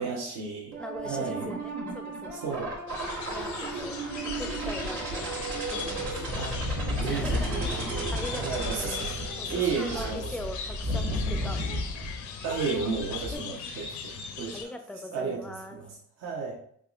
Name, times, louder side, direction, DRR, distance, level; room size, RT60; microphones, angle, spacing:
voice 1, 0.0-0.8 1.0-1.5 2.3-2.8 3.6-3.9 6.3-6.6 7.0-10.3 12.4-14.1 14.4-14.6 15.1-16.6, right 5 dB, 65° right, -2 dB, 0.8 m, -33 dB
sound 1, 0.7-10.1, right 2 dB, 90° right, 1.3 m, -35 dB
voice 2, 0.8-2.4 3.3-6.3 7.1-9.0 9.4-11.7 13.3-13.7 14.5-15.8, left 1 dB, 5° left, 5 dB, 0.4 m, -41 dB
sound 2, 2.9-14.7, left 6 dB, 75° left, 0.6 m, -39 dB
sound 3, 6.3-12.2 12.4-13.4, left 1 dB, 40° right, 0.9 m, -33 dB
3.5 x 3.0 x 2.4 m, 0.64 s
cardioid pair, 90°, 30 cm